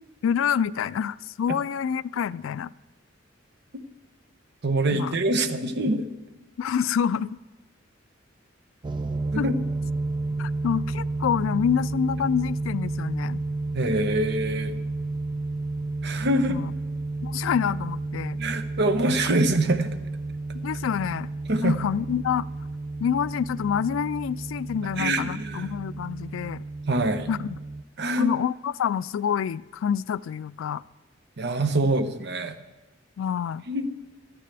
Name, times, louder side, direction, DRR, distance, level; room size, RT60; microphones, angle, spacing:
voice 1, 0.2-2.7 4.9-5.1 6.6-7.4 9.4-9.5 10.4-13.4 16.5-16.7 17.2-18.4 20.6-21.3 21.6-22.5 23.0-26.6 27.3-27.6 28.2-30.8 33.2-33.6, left 8 dB, 85° left, 19 dB, 0.3 m, -27 dB
voice 2, 4.6-6.1 9.3-9.6 13.7-14.8 16.0-16.6 18.4-20.0 21.5-21.8 25.0-25.7 26.9-27.3 28.0-28.3 31.4-32.6 33.7-33.9, right 1 dB, 60° right, 9 dB, 0.9 m, -25 dB
sound 1, 8.8-27.8, right 2 dB, 25° right, 0.4 m, -31 dB
16.5 x 13.0 x 3.4 m, 1.1 s
head